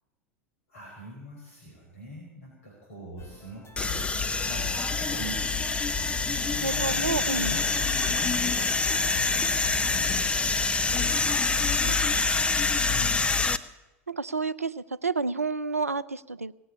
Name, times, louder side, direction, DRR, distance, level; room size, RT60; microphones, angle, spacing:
voice 1, 0.7-5.7 6.0-7.1 7.5-7.6 8.1-9.4 9.8-11.2 12.9-13.4, right 1 dB, 65° left, -2 dB, 5.2 m, -43 dB
sound 1, 3.2-10.4, left 4 dB, 35° left, 2.4 m, -47 dB
sound 2, 3.8-13.6, left 4 dB, 15° left, 0.8 m, -26 dB
voice 2, 6.6-7.6 11.6-12.2 14.1-16.5, right 4 dB, 90° right, 16 dB, 0.5 m, -30 dB
18.0 x 8.2 x 9.8 m, 1.0 s
figure-of-eight pair, 85°, 8 cm